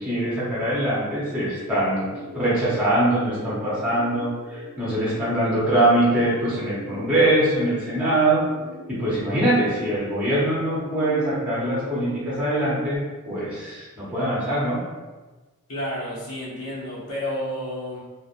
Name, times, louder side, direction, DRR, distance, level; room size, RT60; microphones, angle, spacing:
voice 1, 0.0-2.1 2.3-8.4 8.9-14.8, right 1 dB, 5° right, -10 dB, 0.6 m, -23 dB
sound 1, 1.1-13.0, right 1 dB, 40° left, 0.8 m, -40 dB
voice 2, 15.7-18.0, equal, 75° left, -7 dB, 0.9 m, -30 dB
2.9 x 2.0 x 2.4 m, 1.2 s
head